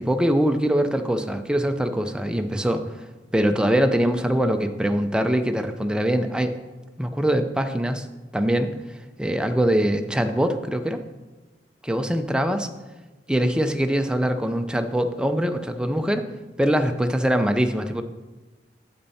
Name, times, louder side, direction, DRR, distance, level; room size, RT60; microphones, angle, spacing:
voice 1, 0.0-2.8 3.3-6.5 7.0-8.1 8.3-8.7 9.2-11.0 11.9-12.7 13.3-16.3 16.6-18.0, equal, 5° right, 7 dB, 0.5 m, -23 dB
8.7 x 7.9 x 4.2 m, 1.2 s
head